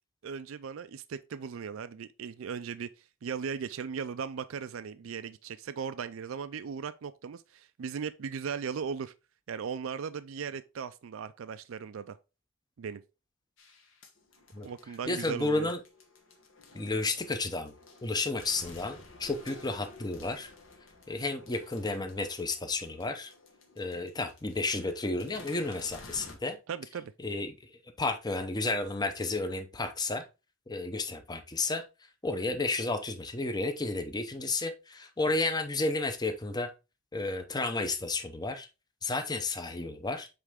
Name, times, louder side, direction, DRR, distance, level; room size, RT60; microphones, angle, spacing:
voice 1, 0.2-2.9 3.2-9.1 9.5-12.2 12.8-13.0 14.6-15.7 26.7-27.1, right 6 dB, 80° right, 0.4 m, -37 dB
sound 1, 13.6-26.4, left 3 dB, 70° left, 1.5 m, -53 dB
voice 2, 15.0-15.8 16.7-17.7 18.0-20.5 21.1-23.3 23.8-26.6 27.2-27.6 28.0-30.2 30.7-31.8 32.2-36.7 37.1-38.7 39.0-40.3, left 3 dB, 20° left, 0.8 m, -32 dB
8.1 x 3.4 x 3.6 m
head